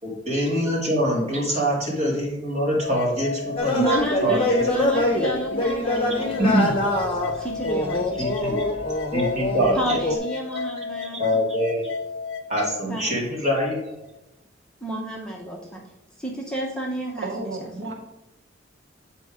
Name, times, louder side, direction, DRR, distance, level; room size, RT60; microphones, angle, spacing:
voice 1, 0.0-3.8 4.2-4.9 5.2-5.3 6.4-6.8 8.2-8.6 9.1-10.0 11.0-11.9 12.5-13.9, equal, 35° right, -4 dB, 2.5 m, -24 dB
sound 1, 2.8-12.8, left 4 dB, 60° left, 0.8 m, -32 dB
sound 2, 3.6-9.8 10.0-10.2, left 1 dB, 30° left, 1.1 m, -24 dB
voice 2, 3.7-6.9 7.4-8.6 9.8-11.2 12.9-13.0 14.8-15.8 16.2-17.5, right 1 dB, 5° left, -2 dB, 0.9 m, -30 dB
voice 3, 17.2-17.9, right 2 dB, 65° right, 2 dB, 0.9 m, -32 dB
8.1 x 4.4 x 4.9 m, 0.90 s
head